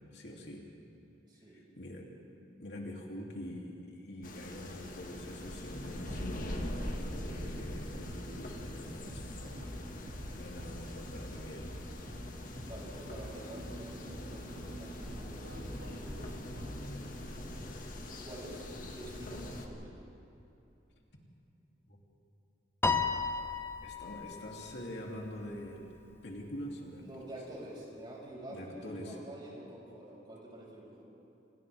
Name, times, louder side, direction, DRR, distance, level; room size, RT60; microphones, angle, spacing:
voice 1, 0.1-0.6 1.5-2.1 2.6-9.6 10.3-11.7 21.9-22.0 23.8-25.8 26.2-27.0 28.5-29.2, equal, 65° left, -2 dB, 3.1 m, -45 dB
voice 2, 1.3-1.6 12.6-17.8 18.2-20.1 27.0-31.0, right 1 dB, 25° right, -4 dB, 6.0 m, -48 dB
sound 1, 4.2-19.7, left 1 dB, 45° left, 1.9 m, -43 dB
sound 2, 5.8-16.8, equal, 55° right, 2.5 m, -47 dB
Piano, 22.8-25.3, left 4 dB, 10° left, 0.8 m, -33 dB
29.5 x 27.0 x 3.6 m, 2.9 s
head